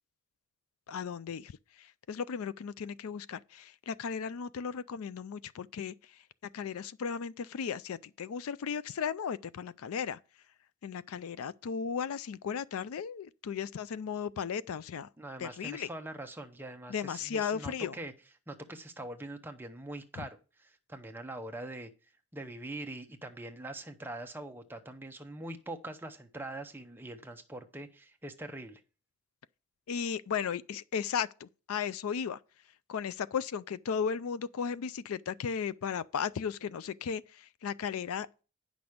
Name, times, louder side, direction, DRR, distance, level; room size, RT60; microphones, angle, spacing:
voice 1, 0.9-6.2 6.5-10.2 10.8-15.1 15.4-15.9 16.9-18.0 20.2-20.3 29.9-32.4 32.9-38.3, left 7 dB, 70° left, 0.4 m, -35 dB
voice 2, 15.2-18.1 18.5-20.4 20.6-21.9 22.3-28.8, right 1 dB, 10° right, 0.8 m, -43 dB
9.5 x 6.0 x 5.0 m
head